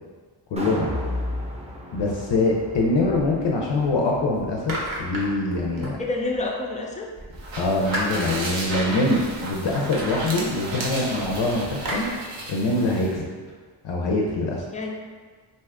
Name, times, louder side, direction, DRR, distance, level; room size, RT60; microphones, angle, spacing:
voice 1, 0.5-0.9 1.9-6.0 7.6-12.1 12.5-13.2 13.8-14.7, left 2 dB, 65° left, -1 dB, 0.5 m, -24 dB
sound 1, 0.6-6.8 7.2-7.3, left 1 dB, 15° right, 0.8 m, -35 dB
sound 2, 2.7-3.9 4.3-6.5 7.1-12.1, equal, 45° right, 0.9 m, -36 dB
voice 2, 6.0-7.1 14.7-14.9, left 2 dB, 15° left, -1 dB, 0.5 m, -28 dB
sound 3, 7.3-13.1, right 2 dB, 70° right, 0.8 m, -33 dB
2.6 x 2.4 x 3.4 m, 1.5 s
cardioid pair, 65°, 47 cm